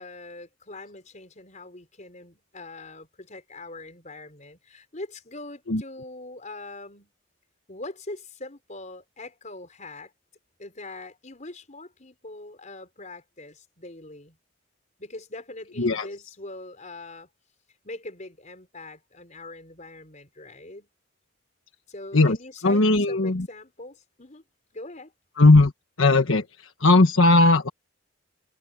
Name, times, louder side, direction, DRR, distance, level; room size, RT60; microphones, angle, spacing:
voice 1, 0.0-7.1 7.7-10.1 10.6-14.4 15.0-17.3 17.8-20.9 21.9-24.4 24.7-25.1, left 2 dB, 35° left, 4.8 m, -42 dB
voice 2, 22.6-23.5 25.4-25.7 26.0-26.4 26.8-27.7, left 2 dB, 75° left, 1.4 m, -17 dB
head